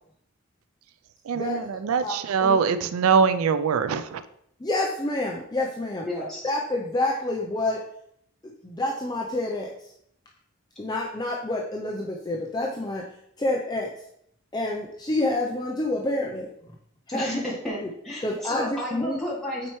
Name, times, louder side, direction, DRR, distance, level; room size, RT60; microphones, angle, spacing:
voice 1, 1.2-4.2, right 6 dB, 80° right, 12 dB, 0.4 m, -23 dB
voice 2, 2.0-2.6 4.6-6.1 6.4-7.8 8.6-9.9 10.8-13.1 13.4-13.9 14.5-16.5 17.1-17.4 17.8-17.9 18.2-19.2, left 2 dB, 20° left, -1 dB, 0.5 m, -28 dB
voice 3, 6.0-6.4 17.1-17.8 18.0-19.7, equal, ahead, -9 dB, 2.5 m, -32 dB
8.6 x 4.4 x 3.1 m, 0.72 s
head